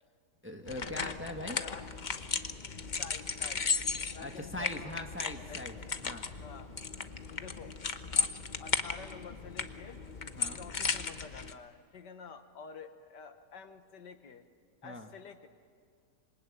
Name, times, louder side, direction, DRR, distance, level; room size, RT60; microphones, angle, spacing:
voice 1, 0.4-1.6 4.2-5.8 6.0-6.3 10.3-10.7 14.8-15.1, left 1 dB, 10° right, 4 dB, 1.4 m, -41 dB
sound 1, 0.7-11.5, left 5 dB, 35° left, 0.8 m, -36 dB
voice 2, 3.0-3.7 4.1-5.0 5.5-5.6 6.4-6.7 7.3-7.7 8.2-8.3 8.6-10.0 10.6-14.5 14.8-15.5, left 6 dB, 80° left, 8 dB, 1.9 m, -49 dB
26.5 x 23.5 x 8.7 m, 2.1 s
omnidirectional pair, 1.8 m